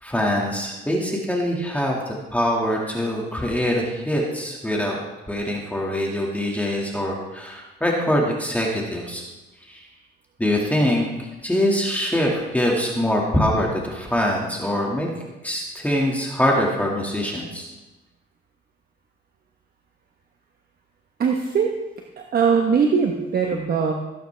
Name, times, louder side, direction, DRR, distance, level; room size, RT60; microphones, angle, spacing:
voice 1, 0.0-5.0 5.3-9.2 9.7-9.9 10.4-15.1 15.4-17.7, equal, 5° left, -2 dB, 2.0 m, -23 dB
voice 2, 21.2-21.7 22.2-23.9, right 6 dB, 50° right, 2 dB, 1.2 m, -21 dB
17.5 x 9.1 x 3.4 m, 1.1 s
cardioid pair, 90°, 20 cm